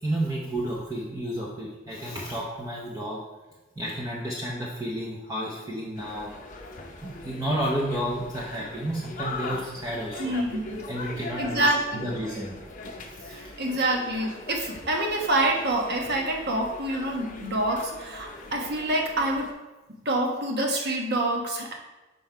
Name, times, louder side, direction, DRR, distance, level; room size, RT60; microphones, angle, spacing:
voice 1, 0.0-3.2 3.8-6.3 7.0-10.4 10.9-11.7 12.0-12.6 13.2-13.5, right 1 dB, 15° right, -4 dB, 0.7 m, -31 dB
sound 1, 5.9-19.5, left 2 dB, 40° left, 0.7 m, -40 dB
voice 2, 10.2-10.8 11.4-12.1 13.3-19.5 20.0-21.7, right 1 dB, 50° right, 1 dB, 1.1 m, -27 dB
5.5 x 5.3 x 4.5 m, 1.1 s
head